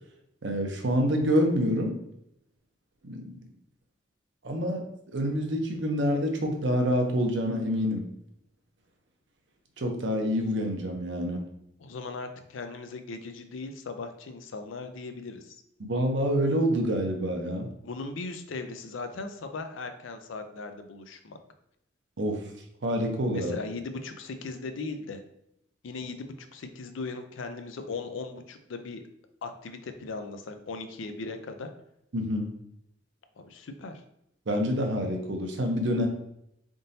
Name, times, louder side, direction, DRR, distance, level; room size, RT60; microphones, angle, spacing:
voice 1, 0.4-1.9 3.0-3.4 4.4-8.1 9.8-11.4 15.8-17.7 22.2-22.5 22.8-23.5 32.1-32.5 34.5-36.1, equal, 65° right, 3 dB, 0.7 m, -27 dB
voice 2, 11.8-15.6 17.8-21.4 23.3-25.2 25.8-29.0 29.4-31.7 33.4-34.0, left 3 dB, 80° left, 7 dB, 0.5 m, -38 dB
3.9 x 3.6 x 2.7 m, 0.79 s
head